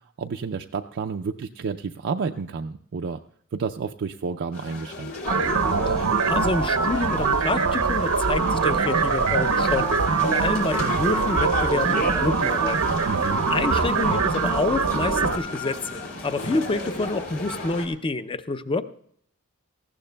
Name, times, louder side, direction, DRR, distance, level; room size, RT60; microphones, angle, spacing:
voice 1, 0.0-3.2 3.5-5.1 13.1-13.4, right 5 dB, 55° right, 4 dB, 0.4 m, -30 dB
sound 1, 4.5-17.9, left 1 dB, 65° left, 2.9 m, -34 dB
sound 2, 5.3-15.4, right 4 dB, 85° right, 0.8 m, -23 dB
voice 2, 5.8-10.0 10.2-13.0 13.5-18.8, left 3 dB, 25° left, 12 dB, 0.5 m, -28 dB
18.5 x 15.0 x 2.2 m, 0.64 s
head